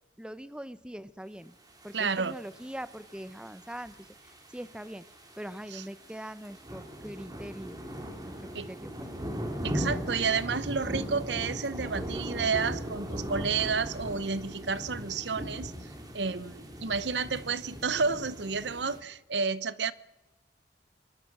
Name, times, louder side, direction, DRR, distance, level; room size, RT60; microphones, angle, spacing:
voice 1, 0.2-1.5 1.8-5.1 5.4-7.8 8.2-9.2, equal, 5° right, 0.7 m, -42 dB
sound 1, 1.8-19.0, equal, 20° right, 3.3 m, -39 dB
voice 2, 1.9-2.4 5.7-5.8 8.5-8.7 9.6-15.7 16.1-19.9, right 5 dB, 75° right, 0.9 m, -31 dB
23.5 x 23.0 x 6.1 m
head